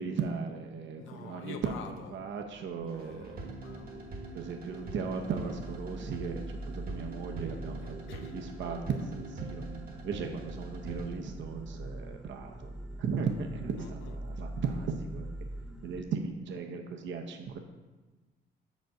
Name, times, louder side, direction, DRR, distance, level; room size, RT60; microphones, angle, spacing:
voice 1, 0.0-3.5 4.3-8.0 8.3-9.6 10.0-12.7 13.0-15.3 15.8-17.6, right 5 dB, 70° right, 4 dB, 0.7 m, -36 dB
voice 2, 0.9-2.1 2.9-4.2 7.8-8.4 13.8-14.4, left 6 dB, 85° left, 7 dB, 0.7 m, -47 dB
sound 1, 2.6-16.0, right 1 dB, 5° right, 0.9 m, -44 dB
sound 2, 2.9-11.1, right 2 dB, 50° right, 1.1 m, -44 dB
6.2 x 5.2 x 4.6 m, 1.3 s
cardioid pair, 90°, 20 cm